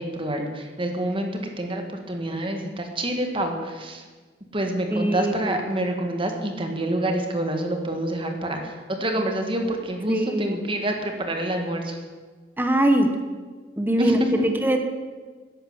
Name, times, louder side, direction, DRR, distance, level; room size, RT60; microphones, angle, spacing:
voice 1, 0.0-4.0 4.5-12.0 14.0-14.5, right 1 dB, 30° right, 4 dB, 1.8 m, -27 dB
voice 2, 4.9-5.6 10.1-10.6 12.6-13.1 13.8-14.2 14.4-14.9, right 1 dB, 10° right, 5 dB, 1.1 m, -22 dB
11.0 x 11.0 x 8.1 m, 1.4 s
head